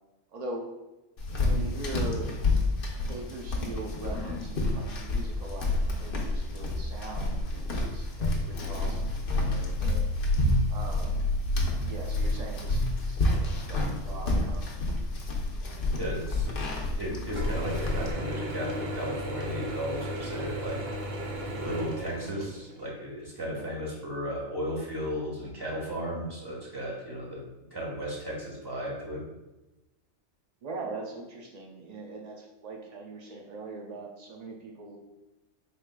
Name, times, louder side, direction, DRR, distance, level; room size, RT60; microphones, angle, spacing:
voice 1, 0.3-0.7 1.3-2.3 3.1-10.0 10.7-11.5 11.8-14.7 23.5-23.7 30.6-35.0, right 2 dB, 80° right, 0 dB, 0.3 m, -41 dB
sound 1, 1.2-18.1, left 2 dB, 50° left, 0.8 m, -29 dB
voice 2, 16.0-16.6 17.0-20.8 21.5-27.4 27.7-29.2, equal, 20° right, -4 dB, 1.1 m, -35 dB
Mechanisms / Drill, 17.3-22.8, equal, 55° right, 0.9 m, -35 dB
4.7 x 4.1 x 2.2 m, 1.0 s
omnidirectional pair, 1.4 m